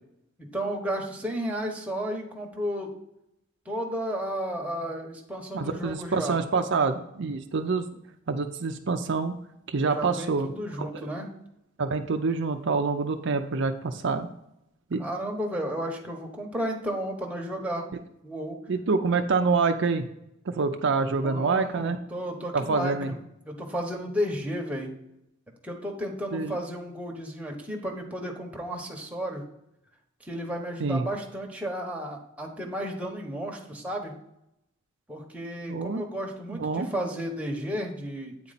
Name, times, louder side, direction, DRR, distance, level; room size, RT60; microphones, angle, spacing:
voice 1, 0.4-2.9 3.6-6.4 9.9-11.3 15.0-17.9 18.2-18.6 21.0-23.2 23.4-24.9 25.6-29.4 30.2-34.1 35.1-38.5, equal, 5° right, 0 dB, 1.1 m, -33 dB
voice 2, 5.5-7.8 8.3-9.3 9.7-10.5 10.8-11.1 11.8-14.3 14.9-15.0 18.7-20.0 20.5-22.0 22.5-23.1 26.3-26.6 30.8-31.1 35.7-36.0 36.5-36.9, right 4 dB, 60° right, 6 dB, 0.5 m, -26 dB
8.7 x 4.2 x 4.1 m, 0.81 s
head